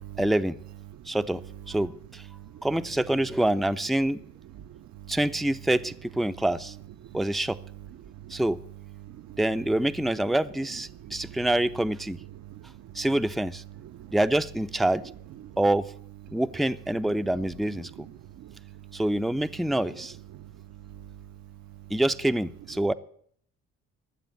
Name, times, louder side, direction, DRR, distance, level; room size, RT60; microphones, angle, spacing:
voice 1, 0.2-0.6 1.1-1.4 1.7-2.2 2.6-4.2 5.1-6.7 7.1-7.6 8.3-8.6 9.4-12.2 12.9-13.6 14.1-15.1 15.6-15.9 16.3-17.9 18.9-20.1 21.9-22.9, right 1 dB, ahead, 11 dB, 0.5 m, -26 dB
voice 2, 0.9-2.7 2.9-3.3 4.1-5.7 6.3-6.4 7.0-10.4 10.9-11.5 12.1-14.2 15.0-15.6 16.3-16.6 17.0-20.0 20.3-22.0, right 12 dB, 70° right, 11 dB, 0.7 m, -46 dB
13.5 x 7.3 x 9.4 m, 0.63 s
cardioid pair, 90°, 30 cm